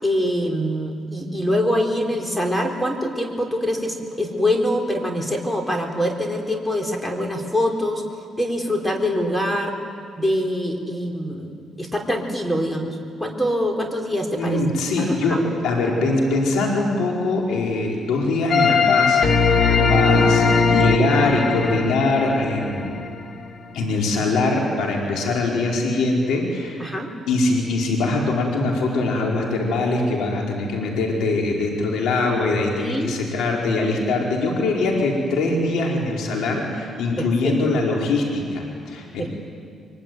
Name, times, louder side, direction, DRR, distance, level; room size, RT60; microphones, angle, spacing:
voice 1, 0.0-8.0 8.4-9.7 10.2-14.6 15.0-15.5 19.6-19.9 26.8-27.1 32.8-33.2 37.2-37.5 39.2-39.3, equal, 10° left, 3 dB, 4.1 m, -24 dB
voice 2, 14.3-22.9 23.7-26.8 27.3-39.3, left 2 dB, 80° left, -1 dB, 4.9 m, -22 dB
sound 1, 18.5-23.3, left 4 dB, 45° left, 2.0 m, -19 dB
23.5 x 23.5 x 9.6 m, 2.2 s
cardioid pair, 90°, 0 cm